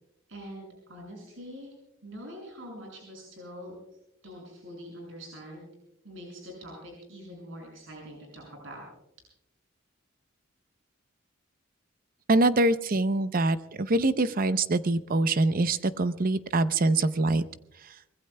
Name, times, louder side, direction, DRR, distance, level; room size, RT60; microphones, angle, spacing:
voice 1, 0.3-1.7 2.0-3.8 4.2-5.7 6.0-8.8, equal, 75° right, -1 dB, 6.2 m, -44 dB
voice 2, 12.3-17.4, right 2 dB, 45° right, 13 dB, 0.6 m, -24 dB
24.5 x 21.0 x 2.2 m, 0.84 s
head